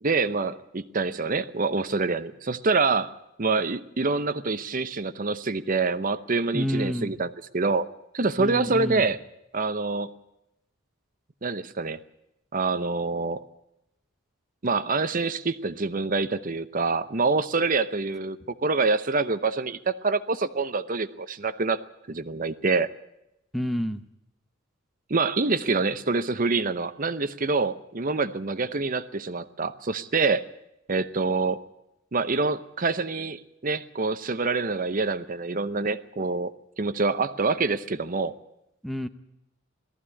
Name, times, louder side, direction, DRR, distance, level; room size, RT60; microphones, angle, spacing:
voice 1, 0.0-3.1 3.4-7.9 8.1-9.2 9.5-10.1 11.4-12.0 12.5-13.4 14.6-21.8 22.1-22.9 25.1-30.4 30.9-31.6 32.1-38.3, right 3 dB, 40° right, 12 dB, 0.8 m, -26 dB
voice 2, 6.5-7.1 8.4-9.0 23.5-24.0 38.8-39.1, equal, ahead, 9 dB, 0.8 m, -29 dB
19.0 x 14.5 x 9.8 m, 0.86 s
head